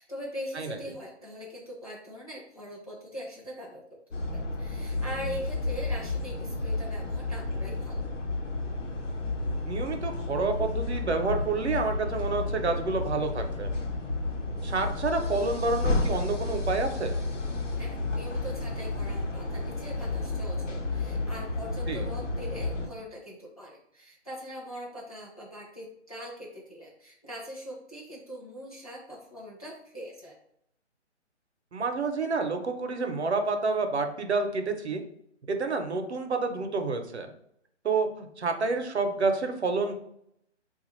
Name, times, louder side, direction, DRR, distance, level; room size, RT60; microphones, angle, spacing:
voice 1, 0.0-3.8 4.1-8.1 17.8-30.3, equal, 30° left, -5 dB, 0.5 m, -42 dB
sound 1, 4.1-22.9, left 2 dB, 90° left, 0.9 m, -31 dB
voice 2, 9.7-13.7 14.6-17.2 21.9-22.0 31.7-35.0 35.5-37.3 37.8-39.9, right 3 dB, 65° right, 6 dB, 0.7 m, -29 dB
3.4 x 2.4 x 3.0 m, 0.72 s
hypercardioid pair, 175°, 36 cm